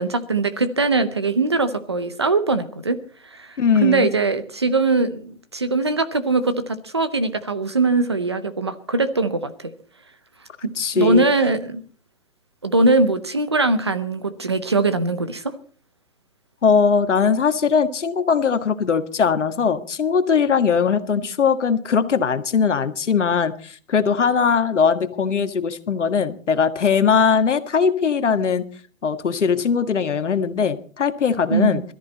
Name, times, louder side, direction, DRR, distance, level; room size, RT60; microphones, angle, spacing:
voice 1, 0.0-3.0 3.3-9.7 10.6-11.8 12.6-15.4 31.5-31.8, right 3 dB, 20° right, 12 dB, 0.6 m, -21 dB
voice 2, 3.6-4.1 10.8-11.2 16.6-28.6 29.0-31.8, left 6 dB, 60° left, 9 dB, 1.8 m, -20 dB
21.5 x 13.5 x 4.1 m, 0.43 s
hypercardioid pair, 170°, 40 cm